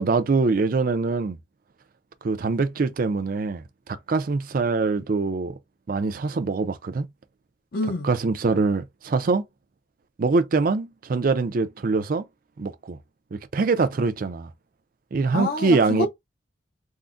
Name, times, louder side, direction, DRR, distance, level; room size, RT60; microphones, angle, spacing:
voice 1, 0.0-1.4 2.2-5.5 5.9-7.1 8.0-9.4 10.2-12.2 12.6-13.0 13.3-14.5 15.1-16.1, right 4 dB, 45° right, 0.4 m, -24 dB
voice 2, 7.7-8.1 15.3-16.1, left 2 dB, 50° left, 0.5 m, -27 dB
3.7 x 2.0 x 2.4 m
head